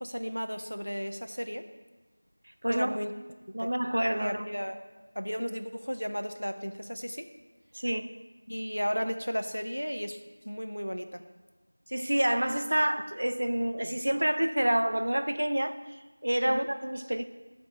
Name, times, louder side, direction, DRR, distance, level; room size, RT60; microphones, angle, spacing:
voice 1, 0.0-1.7 2.7-3.1 3.6-3.7 4.2-4.8 5.2-7.3 8.5-11.2 16.5-16.7, equal, 90° left, 0.6 m, -34 dB
voice 2, 2.6-3.0 3.5-4.4 7.7-8.2 11.9-17.3, right 1 dB, 45° right, 0.3 m, -28 dB
9.4 x 3.7 x 4.1 m
figure-of-eight pair, 175°, 0 cm